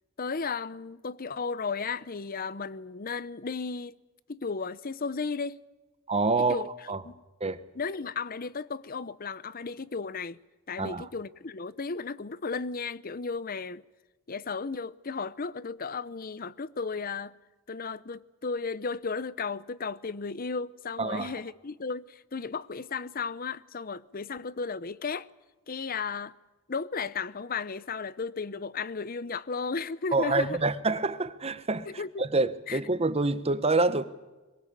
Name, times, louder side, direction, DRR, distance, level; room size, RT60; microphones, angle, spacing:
voice 1, 0.2-3.9 4.3-5.6 6.5-6.7 7.0-7.1 7.7-10.4 10.7-13.8 14.3-17.3 17.7-25.3 25.7-26.3 26.7-30.6 31.9-32.3 32.7-32.8, left 4 dB, 45° left, 0.7 m, -34 dB
voice 2, 6.1-6.6 6.9-7.0 7.4-7.6 10.8-11.1 21.0-21.4 30.1-34.0, right 3 dB, 30° right, 1.1 m, -27 dB
22.5 x 19.0 x 8.6 m
head